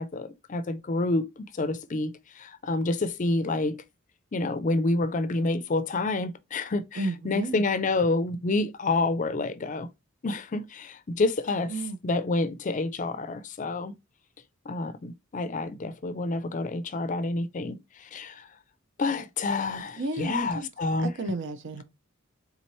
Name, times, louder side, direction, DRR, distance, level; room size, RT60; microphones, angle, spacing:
voice 1, 0.0-3.8 4.3-9.9 10.2-11.7 12.0-13.9 14.6-18.5 19.0-21.1, left 2 dB, 40° left, 0.5 m, -28 dB
voice 2, 7.0-7.6 11.7-12.0 20.0-20.7 21.0-21.8, right 2 dB, 60° right, 0.7 m, -32 dB
4.2 x 3.8 x 3.1 m
head